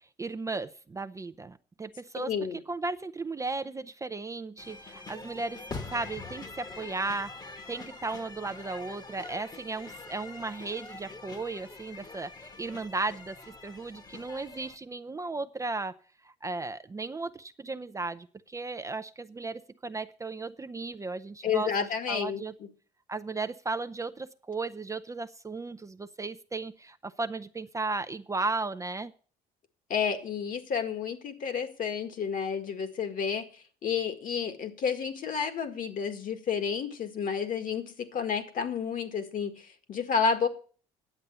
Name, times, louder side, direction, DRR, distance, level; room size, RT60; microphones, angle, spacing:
voice 1, 0.2-2.3 2.7-7.3 7.7-15.9 16.2-21.7 22.1-22.5 23.1-29.1, right 3 dB, 20° right, 10 dB, 0.5 m, -35 dB
voice 2, 2.2-2.6 21.4-22.7 29.9-40.5, left 6 dB, 55° left, 8 dB, 1.8 m, -31 dB
sound 1, 4.6-14.8, left 3 dB, 25° left, 1.2 m, -44 dB
10.0 x 7.9 x 6.9 m, 0.42 s
cardioid pair, 110°, 17 cm